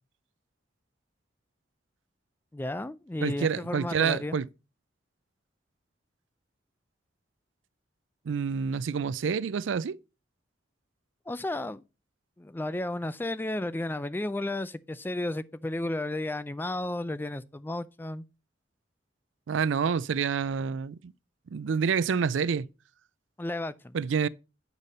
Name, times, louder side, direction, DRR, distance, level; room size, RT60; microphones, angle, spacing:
voice 1, 2.5-4.4 11.3-11.8 12.4-18.2 23.4-24.0, left 1 dB, 10° left, 0.3 m, -33 dB
voice 2, 3.2-4.5 8.3-10.0 19.5-21.1 21.5-22.7 23.9-24.3, right 6 dB, 90° right, 0.4 m, -28 dB
8.3 x 5.2 x 4.1 m
head